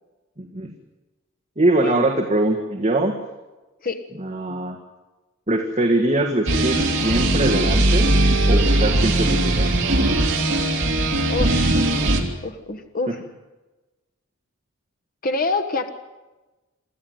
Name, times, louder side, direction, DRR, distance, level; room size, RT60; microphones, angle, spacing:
voice 1, 0.4-0.7 1.6-3.1 4.2-4.8 5.5-8.1 8.5-9.7 13.1-13.2, right 1 dB, 35° right, 2 dB, 1.7 m, -22 dB
sound 1, 6.5-12.2, right 1 dB, 60° right, 3.0 m, -19 dB
voice 2, 11.3-11.9 12.4-13.2 15.2-15.9, left 3 dB, 40° left, 7 dB, 1.3 m, -26 dB
25.5 x 13.5 x 9.5 m, 1.1 s
head